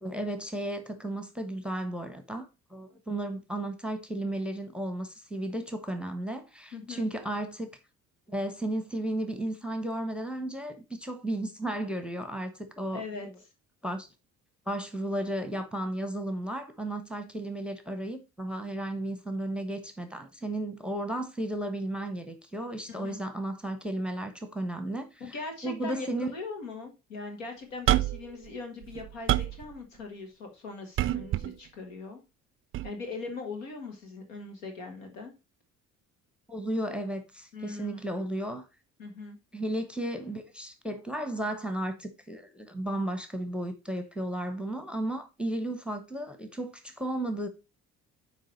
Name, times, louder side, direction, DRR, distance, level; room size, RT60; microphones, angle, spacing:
voice 1, 0.0-7.8 8.3-13.3 13.8-14.1 14.7-25.2 25.6-26.3 36.5-38.7 39.5-47.5, right 1 dB, 5° right, 1.0 m, -34 dB
voice 2, 6.7-7.1 12.9-13.3 22.9-23.2 25.2-32.2 32.8-35.3 37.5-38.2 39.0-39.4, left 3 dB, 70° left, 1.7 m, -40 dB
sound 1, 27.9-28.3 28.8-29.6 31.0-31.5 32.7-32.9, right 14 dB, 35° right, 0.4 m, -26 dB
9.0 x 3.1 x 4.3 m
figure-of-eight pair, 50°, 40 cm